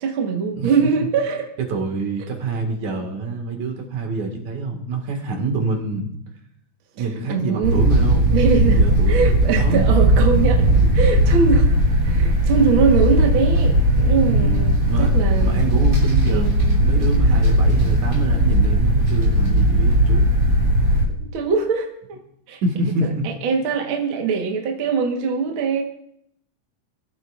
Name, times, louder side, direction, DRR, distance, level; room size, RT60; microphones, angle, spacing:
voice 1, 0.0-1.5 7.3-7.8 8.3-10.7 10.9-11.7 12.1-15.6 16.3-17.4 21.3-22.2 22.5-22.9 23.2-25.8, right 5 dB, 50° right, 2 dB, 1.8 m, -22 dB
voice 2, 1.7-6.1 7.0-8.3 8.7-9.2 9.6-9.9 14.2-15.1 15.4-20.3 22.6-23.2, right 3 dB, 70° right, 2 dB, 3.2 m, -26 dB
sound 1, 7.6-21.1, right 1 dB, 30° right, 3.6 m, -17 dB
22.0 x 12.0 x 2.5 m, 0.73 s
omnidirectional pair, 3.5 m